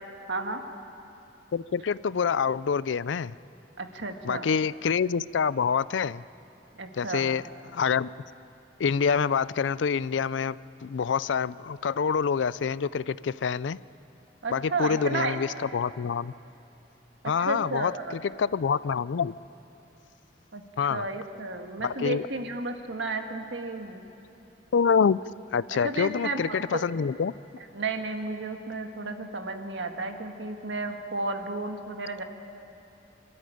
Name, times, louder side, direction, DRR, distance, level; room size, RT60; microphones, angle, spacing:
voice 1, 0.3-0.6 3.8-4.5 6.8-7.3 14.4-15.4 17.2-18.2 20.5-20.6 20.9-24.0 25.8-26.9 27.7-32.2, right 3 dB, 85° right, 5 dB, 1.7 m, -32 dB
voice 2, 1.5-3.3 4.2-6.2 7.0-7.4 7.7-8.1 8.8-10.6 10.8-13.8 14.5-16.3 17.3-17.9 18.4-19.3 20.8-21.0 21.8-22.3 24.7-25.2 25.5-27.3, left 6 dB, 85° left, 19 dB, 0.4 m, -26 dB
24.5 x 13.0 x 10.0 m, 3.0 s
head